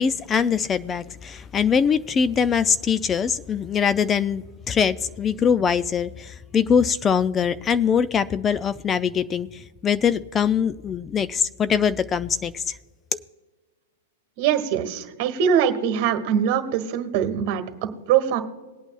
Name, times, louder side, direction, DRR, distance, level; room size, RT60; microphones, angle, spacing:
voice 1, 0.0-12.8 13.1-13.2, left 7 dB, 20° left, 15 dB, 0.4 m, -22 dB
voice 2, 14.4-17.6 18.1-18.4, right 8 dB, 50° right, 8 dB, 1.4 m, -22 dB
20.5 x 8.8 x 2.4 m, 1.3 s
hypercardioid pair, 115°, 0 cm